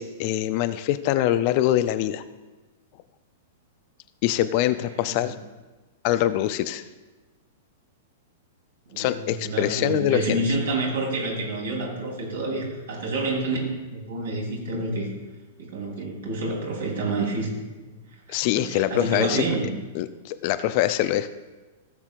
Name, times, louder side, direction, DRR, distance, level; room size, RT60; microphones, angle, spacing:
voice 1, 0.0-2.2 4.2-5.3 6.0-6.8 9.0-10.4 18.3-19.4 19.9-21.3, left 13 dB, 45° left, 12 dB, 0.5 m, -24 dB
voice 2, 5.0-5.3 8.9-13.7 14.1-15.1 15.6-17.5 17.8-17.9 18.3-19.7, right 2 dB, 65° right, -3 dB, 3.6 m, -28 dB
17.0 x 7.2 x 2.6 m, 1.2 s
figure-of-eight pair, 100°, 0 cm